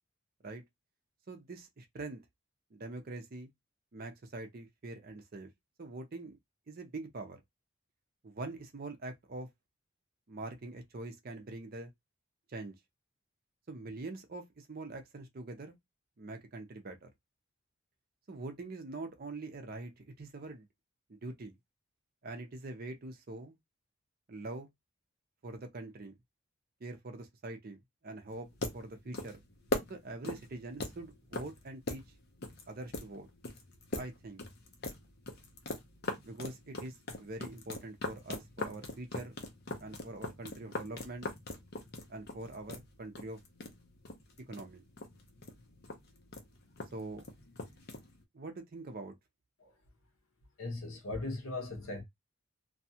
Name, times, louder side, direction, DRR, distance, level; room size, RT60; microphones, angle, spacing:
voice 1, 1.3-2.2 2.7-3.5 3.9-5.5 5.8-6.4 6.7-7.4 8.2-9.5 10.3-11.9 12.5-12.7 13.7-15.7 16.2-17.1 18.3-20.7 21.1-21.5 22.2-23.6 24.3-24.7 25.4-26.2 26.8-28.5 28.7-29.4 29.9-32.0 32.7-33.3 34.0-34.4 36.2-39.4 39.8-41.3 42.1-43.4 44.5-44.8 46.9-47.3 48.3-49.2, right 2 dB, 45° right, 0.5 m, -44 dB
sound 1, 28.3-48.2, left 2 dB, 50° left, 0.6 m, -42 dB
voice 2, 50.6-52.0, left 2 dB, 75° left, 0.9 m, -38 dB
2.6 x 2.2 x 2.7 m
head